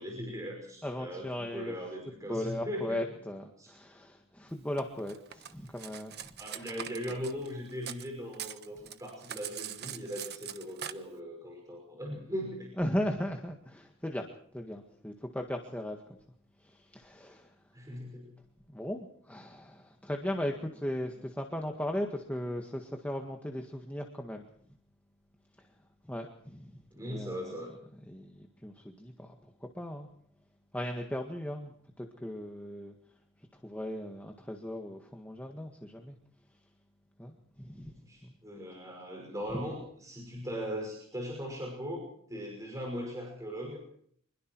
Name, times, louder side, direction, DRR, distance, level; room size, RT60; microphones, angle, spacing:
voice 1, 0.0-3.0 3.6-3.7 6.4-12.7 17.7-18.3 26.9-27.7 37.9-42.0 42.3-43.8, equal, 15° right, 0 dB, 5.8 m, -39 dB
voice 2, 0.8-1.7 2.3-6.1 6.6-6.7 12.8-14.2 14.5-16.0 16.6-17.5 18.7-24.4 26.0-26.8 27.0-27.4 28.1-29.3 29.7-30.1 30.7-32.9 33.6-36.2 37.2-37.9 38.2-38.3 39.5-39.6, left 1 dB, 5° left, 2 dB, 1.7 m, -37 dB
Cutlery silverware, 4.8-8.1 8.3-10.9, right 10 dB, 50° right, 1.1 m, -42 dB
25.5 x 22.0 x 4.7 m, 0.64 s
head